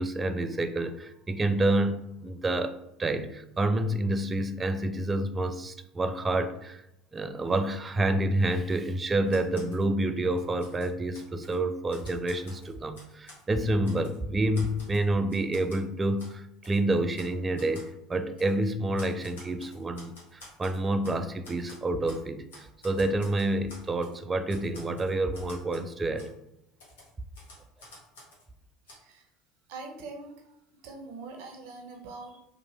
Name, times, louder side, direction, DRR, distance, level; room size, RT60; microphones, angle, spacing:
voice 1, 0.0-2.0 2.2-6.8 7.1-26.3, right 1 dB, 25° right, 9 dB, 0.3 m, -28 dB
Typewriter, 9.3-9.8 10.3-11.6 11.9-13.4 13.8-14.2 14.5-15.8 16.2-16.3 16.6-16.8 17.1-17.3 17.6-17.9 18.4-18.5 19.0-21.2 21.4-22.2 22.5-24.2 24.5-25.9 26.2-26.3 26.8-28.5 28.9-29.0, left 1 dB, 85° left, 1.1 m, -51 dB
voice 2, 28.9-29.3 29.7-30.6 30.8-32.4, right 3 dB, 65° right, 2 dB, 0.6 m, -43 dB
3.0 x 2.2 x 2.9 m, 0.82 s
hypercardioid pair, 80°, 0 cm